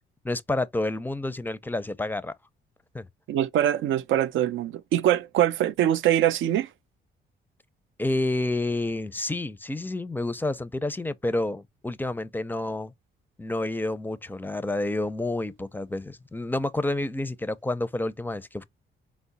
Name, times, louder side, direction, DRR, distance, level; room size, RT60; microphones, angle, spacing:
voice 1, 0.2-2.3 2.9-3.1 8.0-12.9 13.4-18.6, left 2 dB, 10° left, 0.5 m, -29 dB
voice 2, 3.3-6.7, right 11 dB, 80° right, 0.5 m, -23 dB
4.6 x 2.0 x 4.0 m
cardioid pair, 90°, 20 cm